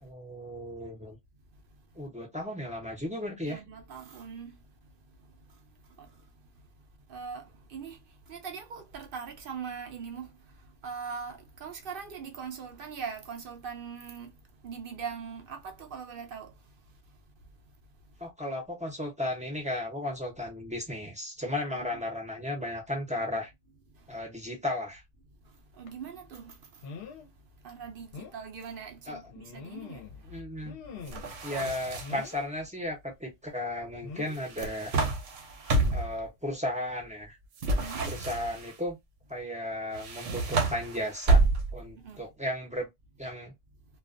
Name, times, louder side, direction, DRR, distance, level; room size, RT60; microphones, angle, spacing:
voice 1, 0.0-1.2 2.0-3.6 18.2-23.5 24.1-25.0 29.1-29.2 30.3-30.8 31.4-34.9 35.9-37.4 38.1-39.0 39.3-41.4 41.7-42.9 43.2-43.5, left 1 dB, 10° right, 0.5 m, -35 dB
voice 2, 3.5-4.6 6.0-6.1 7.1-8.0 8.3-10.3 10.8-14.3 14.6-16.5 21.7-21.9 25.8-26.7 27.6-30.1 30.3-30.4 37.6-38.1 41.9-42.3, right 6 dB, 60° right, 0.7 m, -41 dB
sound 1, 25.9-26.0 26.8-27.3 27.7-27.8 28.1-28.4 29.3-30.2 30.6-31.4 32.0-32.5 34.0-34.4 35.6-35.8 36.2-36.3, left 6 dB, 60° left, 0.8 m, -44 dB
sound 2, 31.1-32.3 34.3-36.2 37.6-38.7 39.9-41.9, right 3 dB, 85° right, 1.0 m, -28 dB
2.3 x 2.3 x 2.4 m
omnidirectional pair, 1.2 m